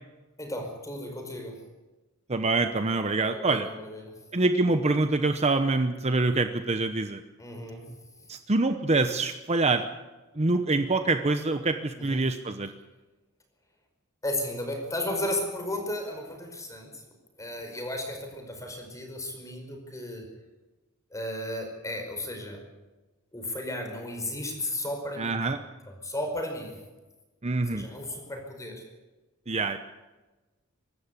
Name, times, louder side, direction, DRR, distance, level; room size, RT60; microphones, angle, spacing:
voice 1, 0.4-1.6 3.2-4.1 7.4-7.9 11.9-12.2 14.2-17.0 17.4-20.2 21.1-22.6 23.3-25.6 26.0-26.7 27.7-28.8, left 1 dB, 15° left, 3 dB, 5.1 m, -34 dB
voice 2, 2.3-3.7 4.3-7.2 8.3-9.8 10.4-12.7 25.2-25.6 27.4-27.8 29.5-29.8, right 3 dB, 30° right, 8 dB, 0.9 m, -25 dB
25.0 x 13.0 x 8.3 m, 1.2 s
head